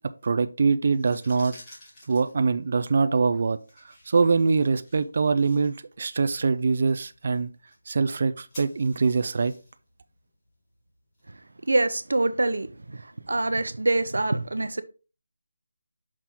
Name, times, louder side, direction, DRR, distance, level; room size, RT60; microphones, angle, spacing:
voice 1, 0.2-1.5 2.1-7.5 7.9-9.5, right 4 dB, 35° right, 0.3 m, -23 dB
sound 1, 0.8-11.7, left 1 dB, 10° left, 1.8 m, -53 dB
voice 2, 11.7-13.0 13.3-14.8, right 2 dB, 75° right, 0.7 m, -25 dB
5.9 x 4.4 x 3.6 m
figure-of-eight pair, 175°, 0 cm